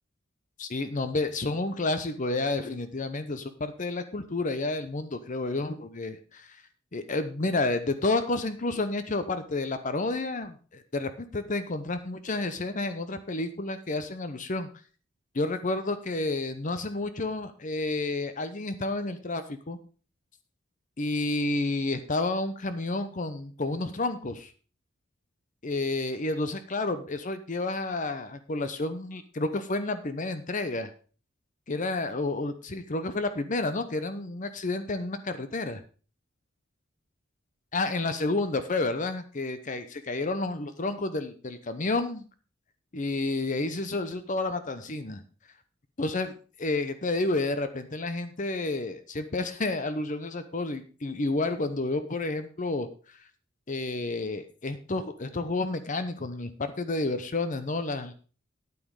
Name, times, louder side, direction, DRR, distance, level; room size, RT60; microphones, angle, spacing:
voice 1, 0.6-6.6 6.9-14.7 15.3-19.8 21.0-24.5 25.6-30.9 31.7-35.8 37.7-42.2 42.9-45.2 46.0-53.2 53.7-58.1, left 2 dB, 40° left, 11 dB, 0.8 m, -30 dB
9.6 x 9.0 x 4.8 m, 0.38 s
head